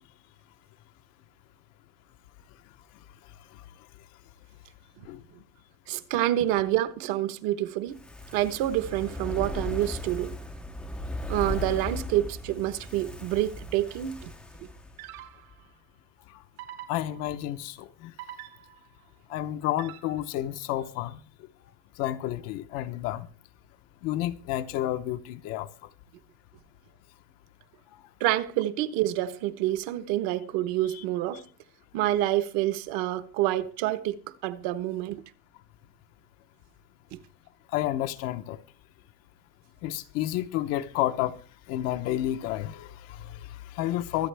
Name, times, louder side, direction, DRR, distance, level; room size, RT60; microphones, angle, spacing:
voice 1, 5.9-8.0 8.3-10.4 11.3-14.3 28.2-31.4 31.9-35.2 37.1-37.2, right 14 dB, 40° right, 1.1 m, -27 dB
Fire, 7.9-15.2 15.5-15.6, left 1 dB, ahead, 0.6 m, -37 dB
sound 1, 13.8-14.1 15.0-15.7 16.6-17.5 18.2-19.0 19.8-20.4, right 12 dB, 75° right, 3.6 m, -45 dB
voice 2, 16.9-18.1 19.3-21.2 22.0-23.3 24.0-25.7 30.9-31.0 31.3-31.4 37.7-38.6 39.8-41.3 41.7-44.3, left 13 dB, 35° left, 0.8 m, -30 dB
25.0 x 8.4 x 3.4 m
supercardioid pair, 165°, 44 cm